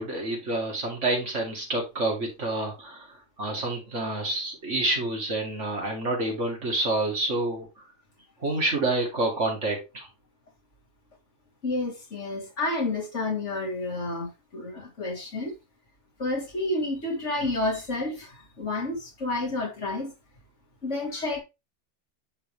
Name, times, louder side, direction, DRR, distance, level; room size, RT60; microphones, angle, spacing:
voice 1, 0.0-7.7 8.4-10.1, right 2 dB, 80° right, 2.7 m, -28 dB
voice 2, 11.6-15.5 16.2-18.3 18.6-20.1 20.8-21.4, left 2 dB, 75° left, 2.5 m, -30 dB
9.9 x 3.6 x 3.2 m
omnidirectional pair, 1.2 m